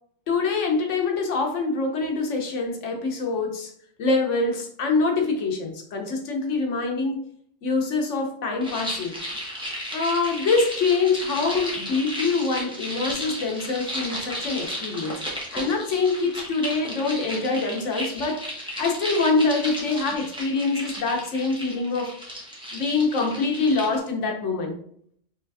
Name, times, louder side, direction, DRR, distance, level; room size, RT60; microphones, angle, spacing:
voice 1, 0.3-3.7 4.0-7.2 7.6-9.2 9.9-15.2 15.5-18.4 18.8-22.1 22.7-24.8, left 3 dB, 75° left, 2 dB, 1.2 m, -25 dB
sound 1, 8.6-24.0, equal, 5° right, 1.1 m, -34 dB
4.4 x 3.3 x 3.4 m, 0.64 s
omnidirectional pair, 1.3 m